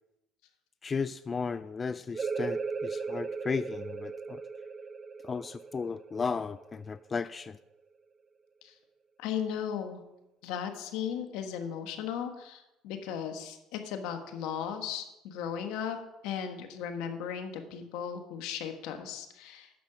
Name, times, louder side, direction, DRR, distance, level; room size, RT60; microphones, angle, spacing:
voice 1, 0.8-4.4 5.2-7.6, left 5 dB, 30° left, 14 dB, 0.3 m, -35 dB
sound 1, 2.1-7.5, right 4 dB, 35° right, 0.7 m, -37 dB
voice 2, 9.2-10.0 10.4-16.0 16.2-19.7, left 8 dB, 80° left, 6 dB, 1.4 m, -36 dB
9.2 x 6.6 x 6.0 m, 0.90 s
supercardioid pair, 85°, 0 cm